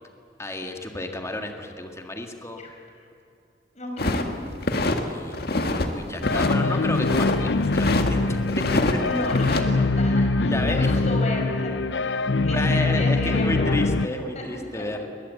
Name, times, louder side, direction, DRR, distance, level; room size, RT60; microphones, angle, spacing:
voice 1, 0.4-2.6 4.9-5.6 5.9-8.3 8.9-9.0 10.5-10.9 12.4-15.1, left 1 dB, 15° left, 4 dB, 1.9 m, -31 dB
voice 2, 3.7-4.3 9.0-12.1 12.4-13.9 14.3-14.9, left 1 dB, 40° left, 1 dB, 5.3 m, -33 dB
sound 1, 4.0-5.0 5.3-5.9 6.2-7.4 7.7-8.1 8.5-9.6, left 2 dB, 60° left, 1.8 m, -25 dB
sound 2, 6.2-14.1, left 3 dB, 80° left, 0.7 m, -23 dB
22.5 x 19.5 x 8.3 m, 2.6 s
head